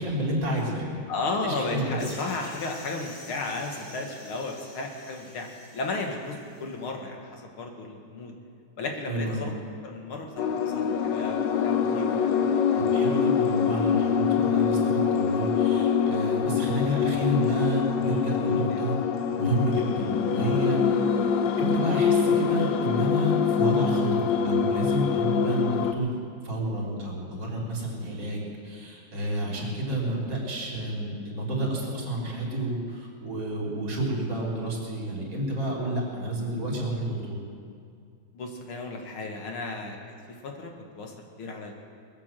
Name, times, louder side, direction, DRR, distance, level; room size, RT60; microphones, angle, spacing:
voice 1, 0.0-1.0 1.4-2.0 9.1-9.5 12.8-19.0 19.4-20.8 21.2-37.4, right 1 dB, 55° right, -3 dB, 4.5 m, -30 dB
voice 2, 1.1-5.5 5.7-8.3 8.8-9.5 9.8-12.3 18.4-18.9 25.8-25.9 29.6-29.8 38.3-40.0 40.3-41.7, left 3 dB, 80° left, 2 dB, 2.5 m, -34 dB
sound 1, 2.0-6.7, left 1 dB, 50° left, 3.9 m, -47 dB
sound 2, 10.4-25.9, left 6 dB, 65° left, 1.3 m, -24 dB
21.5 x 8.3 x 7.6 m, 2.3 s
omnidirectional pair, 2.3 m